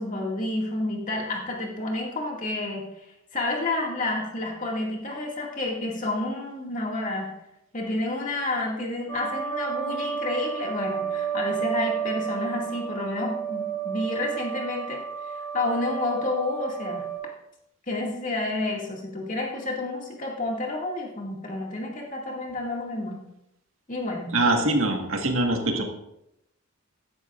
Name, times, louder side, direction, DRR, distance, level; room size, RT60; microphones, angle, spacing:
voice 1, 0.0-2.8 3.3-7.3 7.7-17.1 17.9-23.2 23.9-24.3, left 2 dB, 35° left, -1 dB, 2.2 m, -30 dB
sound 1, 9.1-17.2, right 8 dB, 20° left, 4.6 m, -31 dB
voice 2, 24.3-25.8, right 2 dB, 75° right, 3 dB, 1.6 m, -23 dB
14.5 x 11.0 x 2.5 m, 0.82 s
head